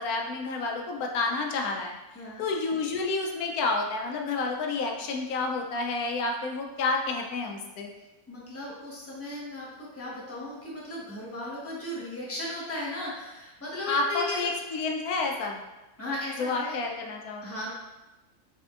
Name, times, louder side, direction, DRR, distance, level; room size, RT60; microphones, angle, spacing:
voice 1, 0.0-1.9 2.4-7.9 13.9-15.6 16.4-17.5, left 3 dB, 80° left, 2 dB, 1.1 m, -29 dB
voice 2, 8.3-14.5 16.0-16.8 17.4-17.7, left 1 dB, 10° left, -6 dB, 1.0 m, -36 dB
5.9 x 3.5 x 2.4 m, 1.0 s
omnidirectional pair, 1.6 m